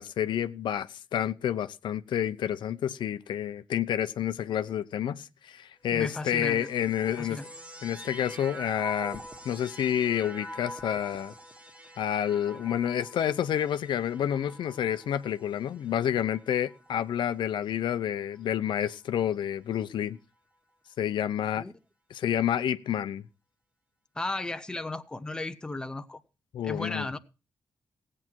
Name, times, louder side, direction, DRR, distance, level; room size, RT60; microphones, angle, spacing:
voice 1, 0.0-7.4 7.8-11.3 12.0-20.2 21.0-21.7 22.1-23.2 26.5-27.1, left 10 dB, 85° left, 0.7 m, -29 dB
voice 2, 5.9-6.7 7.2-7.4 21.6-21.7 24.2-26.2 26.6-27.2, left 2 dB, 10° left, 0.7 m, -35 dB
sound 1, 5.9-17.4 18.2-18.9, equal, 15° right, 1.6 m, -45 dB
17.5 x 8.7 x 4.6 m
wide cardioid pair, 160°, 8 cm